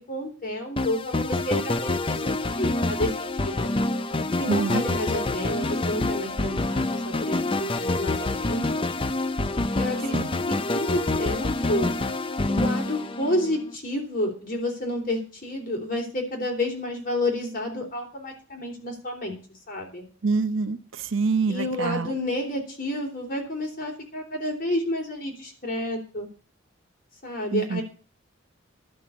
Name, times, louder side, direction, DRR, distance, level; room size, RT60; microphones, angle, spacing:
voice 1, 0.0-3.7 4.4-8.8 9.8-10.2 10.5-11.9 12.5-19.4 19.7-20.1 21.5-26.3 27.2-27.8, left 1 dB, 45° left, 1 dB, 3.7 m, -30 dB
sound 1, 0.8-13.7, left 2 dB, 25° left, 0.5 m, -27 dB
voice 2, 4.5-4.8 10.1-10.3 20.2-22.1 27.5-27.8, right 4 dB, 70° right, 12 dB, 0.7 m, -26 dB
11.5 x 6.1 x 8.5 m, 0.39 s
head